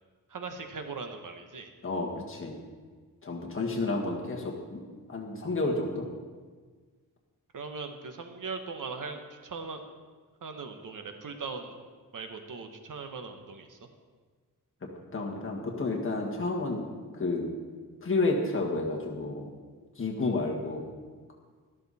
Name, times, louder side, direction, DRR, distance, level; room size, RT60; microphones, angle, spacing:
voice 1, 0.3-1.7 7.5-9.8 10.4-11.8 12.1-13.8, right 4 dB, 65° right, 6 dB, 1.2 m, -39 dB
voice 2, 1.8-2.5 3.2-4.8 5.1-6.1 15.1-16.9 17.1-17.5 18.0-19.5 20.0-20.8, left 2 dB, 35° left, -1 dB, 1.8 m, -30 dB
13.0 x 13.0 x 4.2 m, 1.5 s
wide cardioid pair, 170°, 34 cm